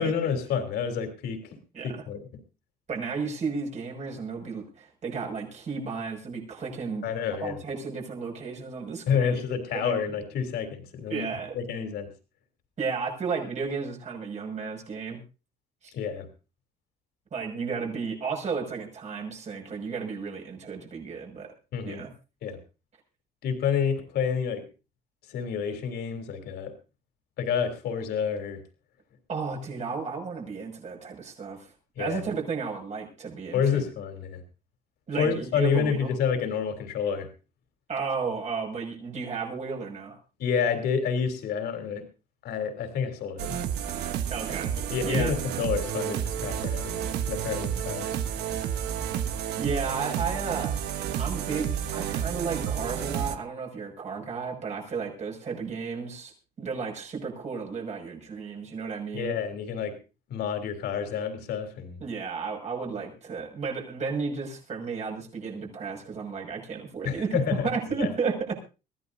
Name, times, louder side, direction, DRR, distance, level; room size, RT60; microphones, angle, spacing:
voice 1, 0.0-1.6 1.8-2.2 7.0-7.6 9.1-11.3 11.5-12.1 15.9-16.3 21.7-22.0 22.4-22.6 23.4-24.6 25.3-26.7 27.4-28.6 32.0-32.2 33.5-34.4 35.2-37.3 40.4-42.0 42.4-43.7 44.9-48.2 59.1-59.9 60.3-62.0 67.0-67.7 68.0-68.1, left 7 dB, 70° left, 6 dB, 3.5 m, -29 dB
voice 2, 2.9-9.4 9.7-10.2 11.1-11.5 12.8-15.2 15.8-15.9 17.3-21.5 21.8-22.1 29.3-31.7 32.0-33.8 35.1-36.1 37.9-40.2 44.3-44.8 45.0-45.4 49.6-50.8 51.2-56.3 56.6-59.4 62.0-68.5, right 5 dB, 45° right, 1 dB, 6.4 m, -33 dB
sound 1, 43.4-53.4, right 9 dB, 75° right, 1.3 m, -31 dB
22.5 x 15.5 x 2.7 m, 0.32 s
cardioid pair, 110°, 17 cm